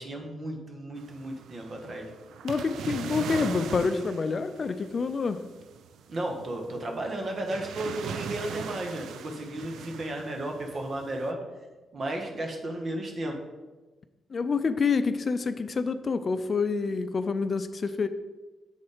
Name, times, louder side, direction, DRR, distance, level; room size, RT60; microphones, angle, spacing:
voice 1, 0.0-2.1 6.1-11.4 11.9-13.4, right 1 dB, 50° right, 3 dB, 1.3 m, -34 dB
sound 1, 1.0-11.3, right 6 dB, 75° right, 0.4 m, -40 dB
voice 2, 2.4-5.4 14.3-18.1, left 4 dB, 50° left, 11 dB, 0.4 m, -27 dB
7.2 x 4.1 x 4.9 m, 1.2 s
supercardioid pair, 50°, 0 cm